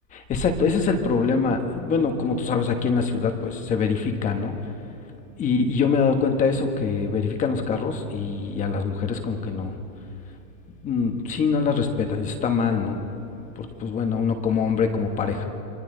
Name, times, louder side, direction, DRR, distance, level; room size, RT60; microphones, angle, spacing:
voice 1, 0.1-4.5 5.4-9.8 10.8-13.0 13.6-15.4, left 5 dB, 15° left, 5 dB, 1.2 m, -24 dB
28.5 x 24.0 x 3.9 m, 2.9 s
supercardioid pair, 165°, 47 cm